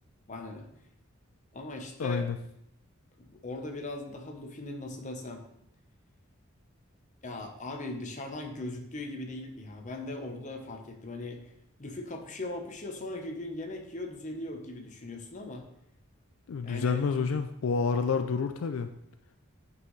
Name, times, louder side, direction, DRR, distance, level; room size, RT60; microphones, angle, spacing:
voice 1, 0.3-0.7 1.5-2.3 3.2-5.4 7.2-11.5 11.8-15.6 16.6-17.0, left 2 dB, 35° left, 3 dB, 0.9 m, -39 dB
voice 2, 2.0-2.4 16.5-18.9, left 5 dB, 75° left, 8 dB, 0.4 m, -28 dB
9.1 x 5.6 x 3.2 m, 0.78 s
head